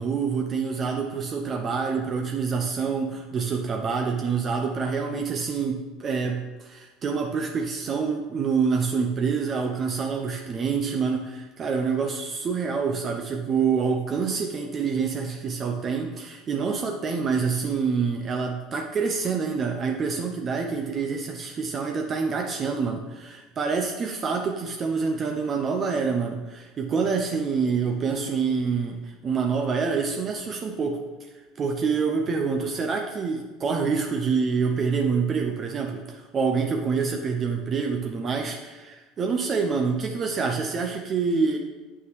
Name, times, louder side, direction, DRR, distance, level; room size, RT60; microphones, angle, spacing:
voice 1, 0.0-31.1 31.6-41.6, right 5 dB, 35° right, 2 dB, 0.6 m, -26 dB
7.6 x 5.5 x 3.3 m, 1.2 s
figure-of-eight pair, 70°, 0 cm